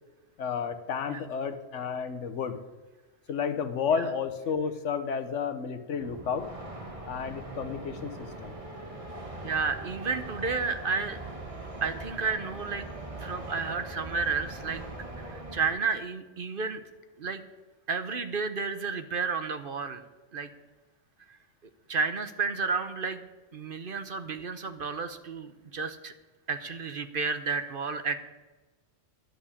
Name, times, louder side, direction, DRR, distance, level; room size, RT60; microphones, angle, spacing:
voice 1, 0.4-2.6 3.3-6.5 7.1-8.5, left 6 dB, 80° left, 9 dB, 1.3 m, -31 dB
sound 1, 6.0-15.7, right 2 dB, 30° right, 1.7 m, -41 dB
voice 2, 9.4-11.2 11.8-12.9 13.2-14.8 15.2-16.8 17.2-17.4 17.9-20.0 20.3-20.5 21.9-23.2 23.5-26.1 26.5-28.2, right 5 dB, 50° right, 10 dB, 1.0 m, -31 dB
11.5 x 7.9 x 8.5 m, 1.2 s
omnidirectional pair, 1.2 m